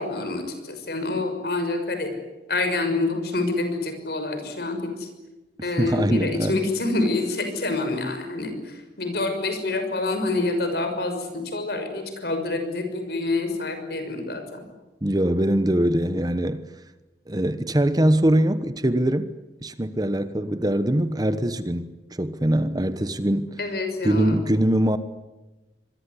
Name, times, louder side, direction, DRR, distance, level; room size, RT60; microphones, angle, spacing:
voice 1, 0.0-2.1 2.5-5.1 5.6-14.6 23.6-24.4, left 2 dB, 60° left, 6.4 m, -27 dB
voice 2, 5.6-6.5 15.0-16.6 17.3-19.3 19.6-23.6 24.0-25.0, right 1 dB, 20° right, 1.1 m, -22 dB
26.5 x 22.0 x 9.9 m
head